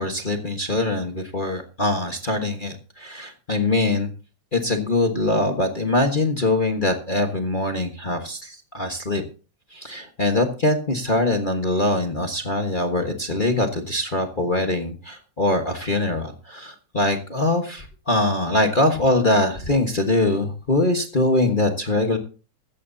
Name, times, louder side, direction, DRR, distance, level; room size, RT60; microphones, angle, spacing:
voice 1, 0.0-4.1 4.5-9.2 9.7-22.2, left 2 dB, 35° left, 3 dB, 0.7 m, -23 dB
15.0 x 15.0 x 2.8 m, 0.35 s
omnidirectional pair, 3.3 m